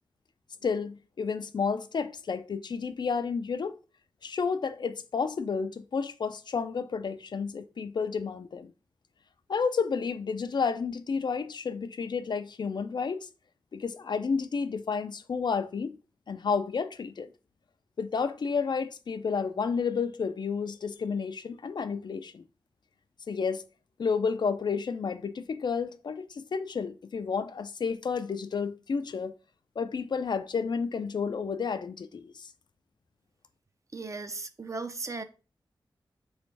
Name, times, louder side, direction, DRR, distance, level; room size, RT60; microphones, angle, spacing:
voice 1, 0.6-3.7 4.2-8.7 9.5-13.3 13.7-16.0 16.3-17.3 18.0-22.4 23.3-23.6 24.0-29.3 29.8-32.5, left 5 dB, 60° left, 0.3 m, -31 dB
voice 2, 33.9-35.2, right 3 dB, 40° right, 0.5 m, -36 dB
3.3 x 3.1 x 3.2 m
wide cardioid pair, 65°, 9 cm